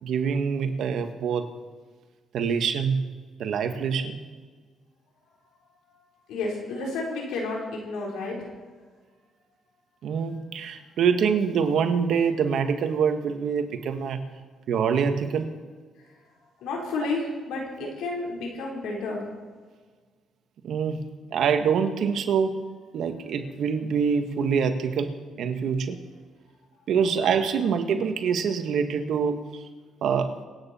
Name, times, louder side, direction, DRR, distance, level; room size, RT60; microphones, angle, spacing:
voice 1, 0.0-1.5 2.3-3.0 3.4-4.2 10.0-14.2 14.7-15.5 17.8-17.9 20.6-21.0 21.3-22.5 22.9-26.0 26.9-29.6 30.0-30.3, right 6 dB, 70° right, 6 dB, 1.6 m, -25 dB
voice 2, 6.3-8.5 16.0-16.2 16.6-19.2, left 3 dB, 90° left, -1 dB, 4.3 m, -31 dB
26.0 x 9.4 x 4.4 m, 1.5 s
cardioid pair, 90°, 0 cm